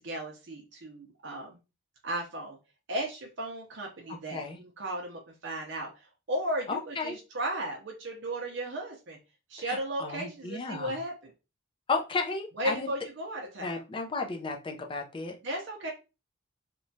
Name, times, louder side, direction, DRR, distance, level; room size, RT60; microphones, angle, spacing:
voice 1, 0.0-1.6 2.0-2.6 2.9-9.2 9.5-11.3 12.6-13.8 15.4-15.9, right 1 dB, 60° right, 1 dB, 0.6 m, -35 dB
voice 2, 6.7-7.1 9.7-11.0 11.9-12.9 13.6-15.4, left 3 dB, 25° left, 3 dB, 0.4 m, -33 dB
3.0 x 2.2 x 2.6 m, 0.29 s
head